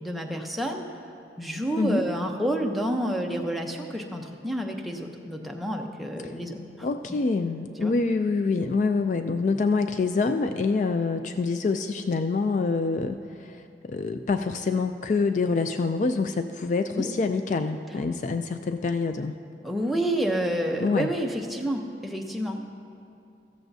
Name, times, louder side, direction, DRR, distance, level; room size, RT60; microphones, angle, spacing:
voice 1, 0.0-0.9 1.4-6.9 7.8-7.9 16.9-17.1 19.6-22.6, right 1 dB, ahead, 1 dB, 0.7 m, -29 dB
voice 2, 6.8-19.4 20.8-21.1, left 4 dB, 45° left, 8 dB, 0.3 m, -26 dB
15.0 x 14.0 x 2.7 m, 2.7 s
head